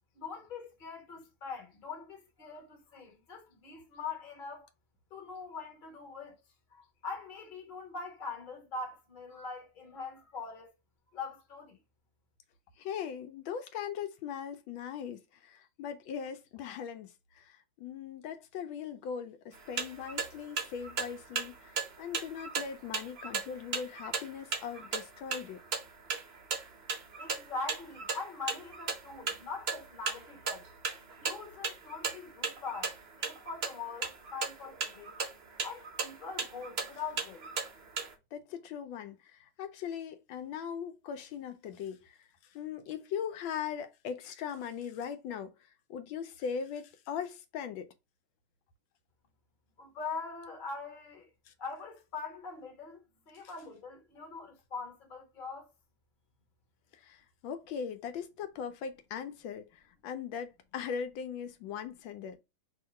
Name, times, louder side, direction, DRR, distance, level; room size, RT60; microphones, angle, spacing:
voice 1, 0.1-4.7 5.1-6.4 6.7-10.7 11.1-11.8 27.2-30.7 31.2-35.2 35.6-37.5 49.8-51.3 51.6-55.7, left 4 dB, 30° left, 1.0 m, -42 dB
voice 2, 12.8-25.6 38.3-42.2 42.5-45.5 45.9-47.9 51.5-51.6 56.9-62.4, left 7 dB, 80° left, 1.4 m, -40 dB
sound 1, 19.5-38.1, right 5 dB, 65° right, 0.6 m, -37 dB
3.0 x 2.8 x 4.3 m
omnidirectional pair, 2.2 m